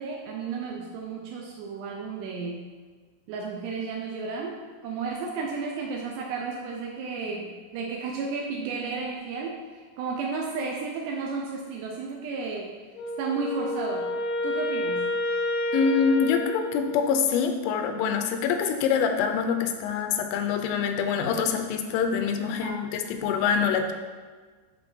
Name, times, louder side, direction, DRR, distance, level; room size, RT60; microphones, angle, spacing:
voice 1, 0.0-2.7 3.3-4.6 4.8-12.8 13.2-14.1 14.4-15.1 22.6-22.8, right 4 dB, 80° right, -1 dB, 2.5 m, -33 dB
Wind instrument woodwind instrument, 12.9-17.3, left 1 dB, 70° left, 1.9 m, -29 dB
voice 2, 15.7-23.9, left 6 dB, 85° left, 6 dB, 3.2 m, -25 dB
10.5 x 3.7 x 4.3 m, 1.5 s
omnidirectional pair, 5.5 m